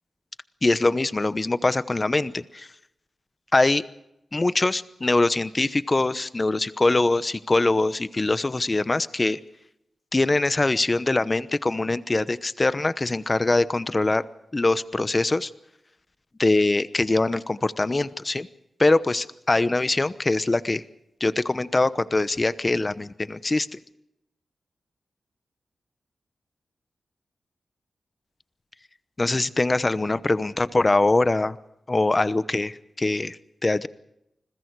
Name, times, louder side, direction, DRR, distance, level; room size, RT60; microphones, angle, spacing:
voice 1, 0.6-2.7 3.5-3.8 4.3-9.4 10.1-14.2 14.5-15.5 16.4-18.5 18.8-20.8 21.2-23.8 29.2-31.6 31.9-33.9, left 2 dB, 25° left, 14 dB, 0.9 m, -23 dB
29.5 x 21.5 x 4.7 m, 0.85 s
wide cardioid pair, 100°, 0 cm